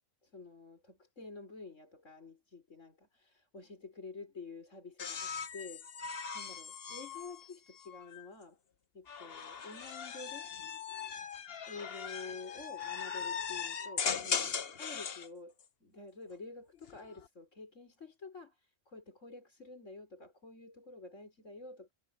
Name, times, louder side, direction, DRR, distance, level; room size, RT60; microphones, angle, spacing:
voice 1, 0.2-5.9 6.3-8.6 8.9-10.5 11.7-15.5 15.8-21.9, left 3 dB, 65° left, 5.2 m, -49 dB
sound 1, 5.0-8.3 9.1-15.3 16.7-17.3, left 6 dB, 50° left, 1.1 m, -39 dB
omnidirectional pair, 1.4 m